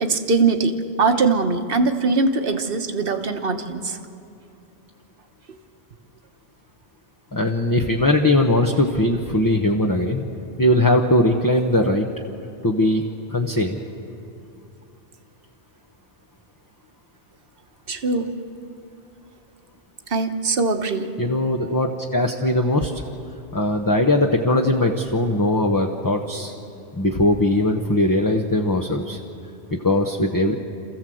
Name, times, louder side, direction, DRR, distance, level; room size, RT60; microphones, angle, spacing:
voice 1, 0.0-4.0 17.9-18.3 20.1-21.1, right 4 dB, 60° right, 6 dB, 1.4 m, -21 dB
voice 2, 7.3-10.2 10.6-12.1 12.6-13.0 13.3-13.8 21.2-22.9 23.5-26.5 26.9-29.2 29.7-30.5, left 1 dB, 20° left, 2 dB, 0.9 m, -20 dB
27.5 x 15.0 x 7.8 m, 2.6 s
omnidirectional pair, 1.1 m